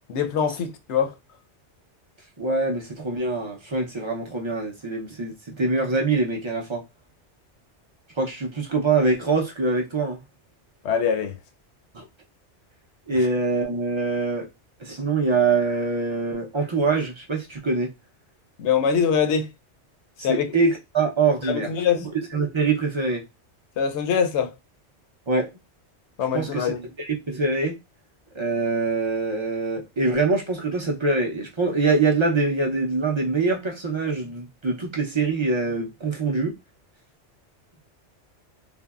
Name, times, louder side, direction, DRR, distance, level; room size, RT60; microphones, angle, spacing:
voice 1, 0.1-1.1 10.8-11.4 18.6-19.5 20.2-20.5 21.4-22.0 23.8-24.5 26.2-26.8, left 7 dB, 75° left, 0.9 m, -23 dB
voice 2, 2.4-6.8 8.2-10.2 11.9-12.1 13.1-14.5 14.8-17.9 20.2-21.7 22.0-23.2 25.3-25.5 26.3-26.7 27.0-27.8 28.3-36.6, right 3 dB, 40° right, 0.4 m, -24 dB
3.4 x 2.0 x 2.2 m
omnidirectional pair, 1.2 m